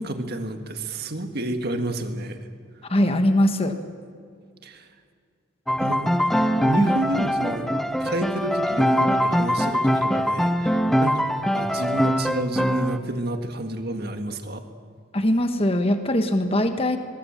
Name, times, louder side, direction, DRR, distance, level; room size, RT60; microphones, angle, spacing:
voice 1, 0.0-2.4 4.6-4.9 5.8-6.2 6.6-14.6, right 1 dB, 50° right, 6 dB, 1.9 m, -30 dB
voice 2, 2.9-3.8 6.8-6.9 15.1-17.0, left 1 dB, 30° left, 7 dB, 1.4 m, -21 dB
Piano, 5.7-13.0, equal, ahead, 0.8 m, -22 dB
22.5 x 21.5 x 7.4 m, 2.1 s
head